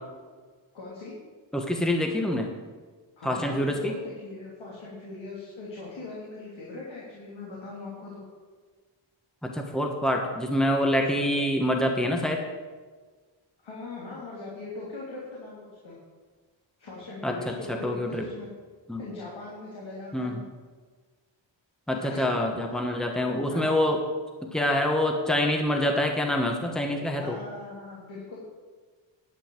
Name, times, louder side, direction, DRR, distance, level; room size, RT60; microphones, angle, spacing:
voice 1, 0.7-1.1 3.2-8.2 13.6-16.0 16.8-18.5 19.0-20.5 21.9-22.4 23.5-23.8 27.2-28.4, left 3 dB, 75° left, -6 dB, 3.3 m, -40 dB
voice 2, 1.5-2.5 3.2-4.0 9.4-12.4 17.2-18.3 18.9-19.0 20.1-20.4 21.9-24.0 24.4-27.4, left 1 dB, ahead, 2 dB, 1.3 m, -26 dB
11.0 x 5.6 x 8.9 m, 1.4 s
wide cardioid pair, 120°, 47 cm